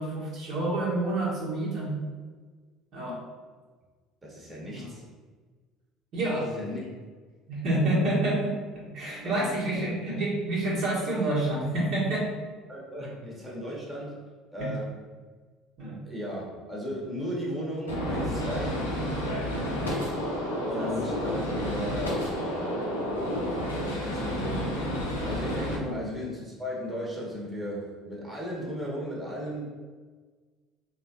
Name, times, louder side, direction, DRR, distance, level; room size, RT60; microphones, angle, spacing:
voice 1, 0.0-2.0 2.9-3.2 4.6-4.9 6.1-6.5 7.5-12.3 14.6-14.7 15.8-16.0 19.7-20.0 20.8-20.9 25.9-26.0, right 1 dB, 55° right, -6 dB, 1.2 m, -28 dB
voice 2, 4.2-5.0 6.3-6.8 9.2-9.9 12.7-14.2 14.5-15.0 16.0-18.8 20.6-24.8 25.2-29.6, equal, 15° right, -4 dB, 1.1 m, -36 dB
Gunshot gunfire, 17.9-25.8, equal, 85° left, 0.6 m, -30 dB
3.7 x 2.4 x 2.7 m, 1.4 s
hypercardioid pair, 65°, 0 cm